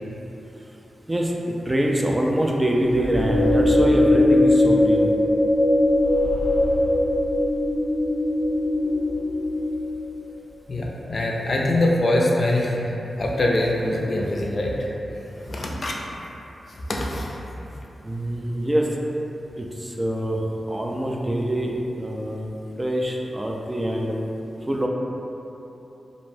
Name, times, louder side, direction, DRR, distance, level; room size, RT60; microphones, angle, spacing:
voice 1, 1.1-5.1 18.0-18.9 19.6-20.4 20.7-22.5 22.8-24.2 24.7-24.9, right 1 dB, 20° right, -1 dB, 0.3 m, -24 dB
sound 1, 2.9-10.2, left 1 dB, 40° right, 0.8 m, -20 dB
voice 2, 10.7-14.7 15.4-16.0 16.9-17.4, left 1 dB, 55° left, -2 dB, 0.4 m, -23 dB
2.5 x 2.1 x 3.2 m, 3.0 s
cardioid pair, 55°, 0 cm